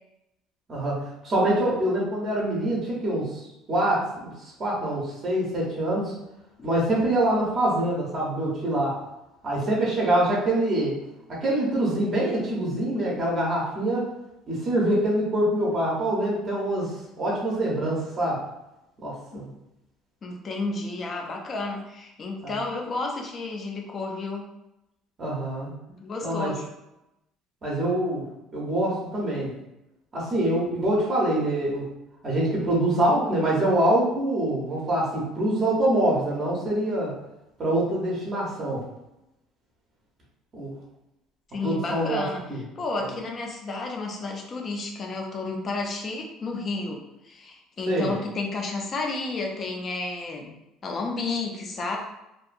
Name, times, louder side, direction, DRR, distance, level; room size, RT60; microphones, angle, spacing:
voice 1, 0.7-3.4 3.7-6.1 6.6-9.0 9.4-10.9 11.3-14.1 14.5-16.9 17.2-18.4 19.0-19.5 22.4-22.5 25.2-25.7 26.2-26.5 27.6-28.2 28.5-29.5 30.1-31.9 32.2-37.1 37.6-38.8 40.5-40.7 41.6-42.6 43.0-43.1 47.9-48.1, right 1 dB, 25° right, -5 dB, 0.6 m, -25 dB
voice 2, 20.2-24.5 26.0-26.6 41.5-42.4 42.8-47.0 47.2-50.5 50.8-52.0, left 3 dB, 25° left, 1 dB, 0.4 m, -31 dB
2.6 x 2.3 x 2.4 m, 0.90 s
cardioid pair, 175°, 0 cm